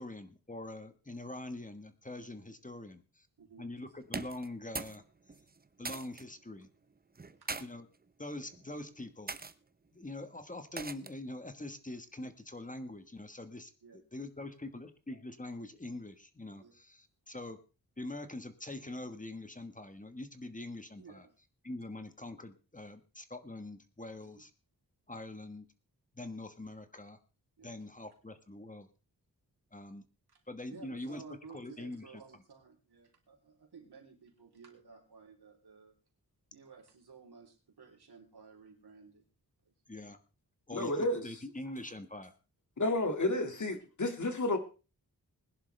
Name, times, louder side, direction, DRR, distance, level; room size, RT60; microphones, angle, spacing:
voice 1, 0.0-3.3 3.6-5.0 5.8-6.7 7.6-7.9 8.2-9.3 9.9-17.6 18.0-21.3 21.6-24.5 25.1-25.7 26.1-27.2 27.6-28.9 29.7-30.0 30.5-31.2 31.5-32.2 39.9-40.2 40.7-42.3, left 2 dB, 20° left, 8 dB, 1.3 m, -44 dB
sound 1, 4.0-5.0 5.3-6.2 7.1-7.6 8.4-8.7 9.3-9.5 10.8-11.2, right 4 dB, 25° right, 0.7 m, -41 dB
voice 2, 21.0-21.3 24.2-24.4 27.6-27.7 30.3-30.4 30.7-35.9 36.5-39.2 39.7-39.8 43.5-43.7, right 5 dB, 85° right, 1 dB, 3.4 m, -54 dB
voice 3, 40.7-41.3 42.8-44.6, left 2 dB, 50° left, 6 dB, 2.2 m, -31 dB
20.5 x 11.0 x 3.3 m, 0.33 s
wide cardioid pair, 105°, 38 cm